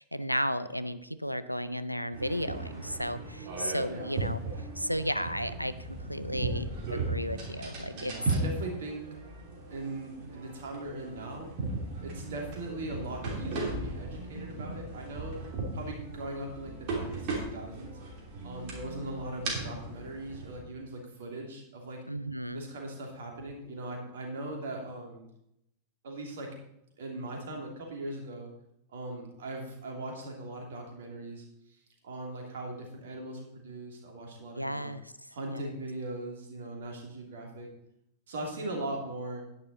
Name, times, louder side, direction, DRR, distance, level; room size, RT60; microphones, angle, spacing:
voice 1, 0.0-4.4 4.8-8.1 22.1-22.7 34.5-35.1 35.5-35.7, equal, 90° left, 13 dB, 0.5 m, -34 dB
sound 1, 2.1-20.6, right 2 dB, 45° right, 3.0 m, -37 dB
voice 2, 3.8-4.2 7.9-9.0 9.7-11.5 12.0-15.4 15.7-18.0 18.4-22.0 22.5-25.2 26.0-26.5 27.0-28.5 28.9-31.8 32.0-34.9 35.3-37.7 38.3-39.4, right 2 dB, 60° right, 1 dB, 2.7 m, -39 dB
10.5 x 9.4 x 4.1 m, 0.80 s
figure-of-eight pair, 90°, 0 cm